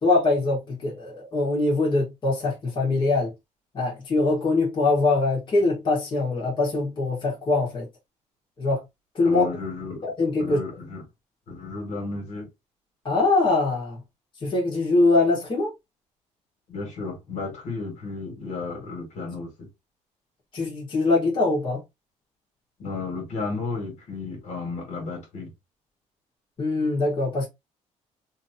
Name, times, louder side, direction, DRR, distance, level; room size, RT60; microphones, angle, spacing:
voice 1, 0.0-3.3 3.7-7.9 8.6-8.8 9.1-9.5 10.0-10.6 13.0-14.0 14.4-15.7 20.5-21.8 26.6-27.5, left 3 dB, 40° left, 1.5 m, -23 dB
voice 2, 9.2-10.0 10.4-11.0 11.5-12.5 16.7-19.7 22.8-25.5, left 3 dB, 70° left, 1.9 m, -33 dB
3.0 x 2.9 x 2.7 m
cardioid pair, 125°, 13 cm